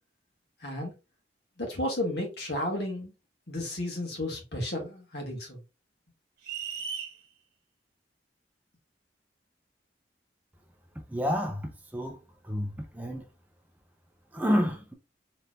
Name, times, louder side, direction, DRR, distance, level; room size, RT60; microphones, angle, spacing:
voice 1, 0.6-0.9 1.6-3.1 3.5-5.6, left 1 dB, 65° left, 1.6 m, -33 dB
sound 1, 6.4-7.2, right 6 dB, 55° right, 1.4 m, -35 dB
voice 2, 11.1-12.2 12.5-13.2 14.3-14.9, equal, 10° right, 0.5 m, -29 dB
4.2 x 3.3 x 2.3 m
head